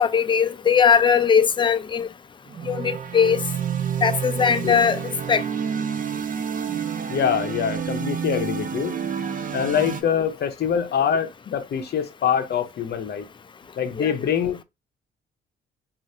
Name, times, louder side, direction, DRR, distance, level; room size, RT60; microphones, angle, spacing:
voice 1, 0.0-2.1 2.7-3.4 4.0-5.0 5.3-5.4 14.0-14.1, left 7 dB, 25° left, 0.4 m, -19 dB
sound 1, 2.5-10.0, right 8 dB, 45° right, 0.5 m, -29 dB
voice 2, 7.1-9.0 9.5-13.3 13.8-14.6, left 8 dB, 55° left, 0.7 m, -24 dB
3.1 x 2.5 x 2.7 m
cardioid pair, 90°, 20 cm